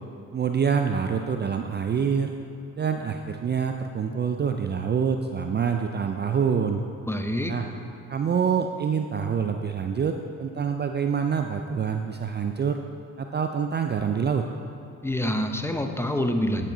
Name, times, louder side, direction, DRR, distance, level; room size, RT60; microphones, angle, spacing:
voice 1, 0.3-2.3 2.8-6.8 7.5-7.7 8.1-12.8 13.2-14.5, right 6 dB, 30° right, 5 dB, 0.4 m, -26 dB
voice 2, 7.1-7.5 15.0-16.7, left 1 dB, 5° left, 5 dB, 0.7 m, -26 dB
9.1 x 7.4 x 3.9 m, 2.7 s
supercardioid pair, 65°, 36 cm